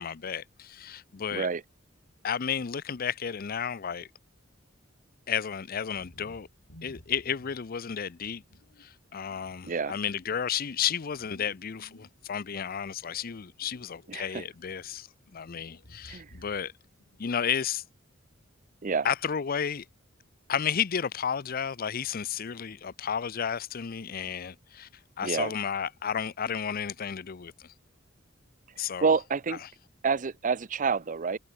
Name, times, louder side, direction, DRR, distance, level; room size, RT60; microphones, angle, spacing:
voice 1, 0.0-1.5 2.2-4.1 5.3-6.5 6.8-8.4 8.8-16.7 17.2-17.8 19.0-19.9 20.5-24.9 25.2-27.7 28.8-29.1, left 7 dB, 50° left, 0.5 m, -32 dB
voice 2, 1.3-1.6 9.6-10.0 14.1-14.4 16.1-16.3 18.8-19.1 25.2-25.5 29.0-29.6 30.0-31.4, right 5 dB, 40° right, 0.6 m, -28 dB
sound 1, 6.0-7.8 8.2-8.9 9.3-12.4 12.8-14.4 14.6-15.0 15.5-16.7 17.0-17.4, equal, 85° left, 7.2 m, -55 dB
head